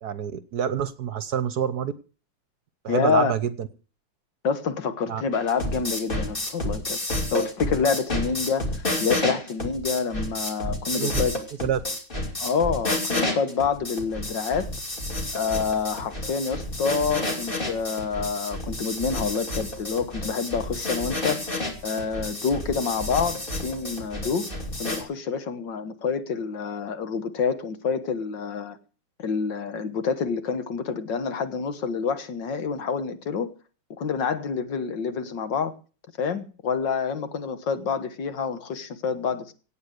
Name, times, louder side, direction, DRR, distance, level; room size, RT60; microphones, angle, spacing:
voice 1, 0.0-1.9 2.8-3.7 5.1-5.2 10.9-11.1 11.6-11.8, right 8 dB, 60° right, 15 dB, 1.3 m, -27 dB
voice 2, 2.9-3.3 4.4-7.0 7.3-11.3 12.4-14.7 15.3-21.4 21.8-24.5 24.8-28.8 29.2-33.5 34.0-35.7 36.2-39.5, left 5 dB, 65° left, 11 dB, 2.1 m, -27 dB
sound 1, 5.3-25.0, left 1 dB, 25° left, 2.9 m, -30 dB
17.5 x 8.5 x 6.5 m, 0.37 s
omnidirectional pair, 2.2 m